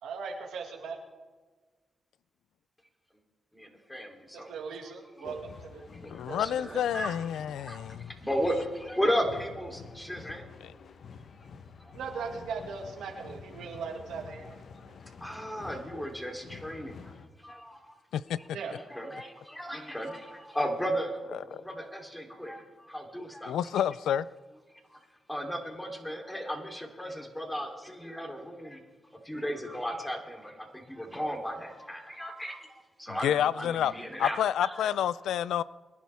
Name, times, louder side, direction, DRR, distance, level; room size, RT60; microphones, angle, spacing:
voice 1, 0.0-1.0 4.3-5.8 6.3-6.9 11.9-15.0 18.5-18.7, right 5 dB, 90° right, 2 dB, 2.0 m, -39 dB
voice 2, 3.5-4.5 5.2-5.3 5.9-7.1 7.4-10.5 11.8-11.9 15.2-17.1 17.4-17.9 18.7-23.6 24.9-25.0 25.3-28.8 29.2-34.8, equal, 10° left, 2 dB, 3.3 m, -35 dB
sound 1, 5.2-17.3, left 5 dB, 70° left, 1.0 m, -49 dB
voice 3, 6.1-8.1 10.6-10.7 18.1-18.4 21.5-21.6 23.4-24.3 33.1-33.9 34.2-35.6, left 10 dB, 90° left, 18 dB, 0.3 m, -29 dB
22.5 x 11.0 x 3.5 m, 1.3 s
cardioid pair, 60°, 0 cm